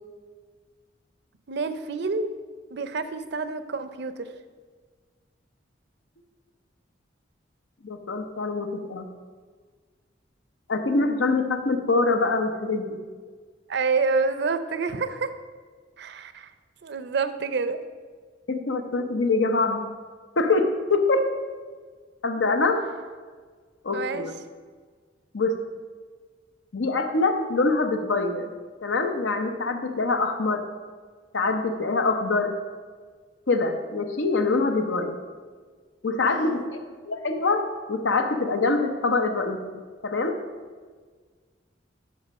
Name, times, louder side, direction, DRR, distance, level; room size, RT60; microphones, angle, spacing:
voice 1, 1.5-2.3 2.7-4.2 13.7-15.3 16.0-16.5 16.8-17.8 23.9-24.3 36.3-36.7, right 4 dB, 65° right, 11 dB, 0.5 m, -28 dB
voice 2, 7.8-9.1 10.7-13.0 18.5-19.9 20.4-21.3 22.2-22.8 23.8-24.3 25.3-25.6 26.7-28.4 28.8-30.7 31.3-32.5 33.5-35.2 36.0-36.8 37.1-39.6 40.0-40.4, left 3 dB, 80° left, 6 dB, 0.8 m, -24 dB
7.8 x 6.0 x 5.3 m, 1.6 s
head